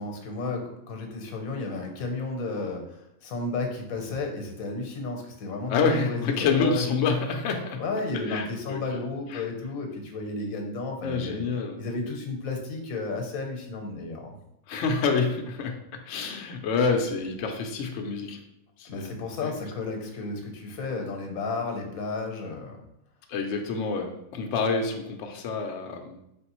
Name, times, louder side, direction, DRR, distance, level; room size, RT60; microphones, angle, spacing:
voice 1, 0.0-6.8 7.8-11.4 11.8-14.3 18.8-22.8, left 3 dB, 85° left, 3 dB, 1.2 m, -33 dB
voice 2, 5.7-7.8 8.3-9.0 9.3-9.5 11.0-11.8 14.7-18.4 18.8-19.1 19.4-19.5 23.3-26.2, left 4 dB, 70° left, 3 dB, 0.9 m, -27 dB
4.3 x 3.5 x 2.9 m, 0.81 s
omnidirectional pair, 1.4 m